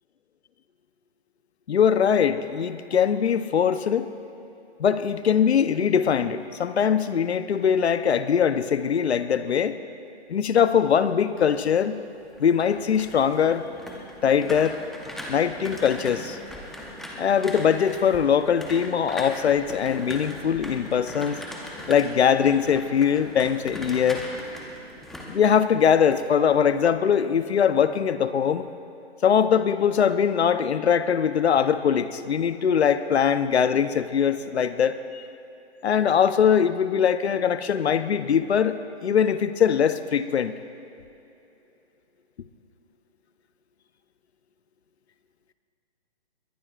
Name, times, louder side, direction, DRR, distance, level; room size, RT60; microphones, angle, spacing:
voice 1, 1.7-4.1 4.8-9.8 10.3-12.0 12.4-13.7 14.2-14.8 15.3-16.4 17.2-21.4 21.9-24.2 25.3-28.7 29.2-35.3 35.8-40.6, left 7 dB, 75° left, 12 dB, 0.9 m, -22 dB
sound 1, 12.2-26.2 26.5-26.9, equal, ahead, 0.8 m, -39 dB
22.0 x 20.0 x 2.5 m, 2.9 s
hypercardioid pair, 145°, 33 cm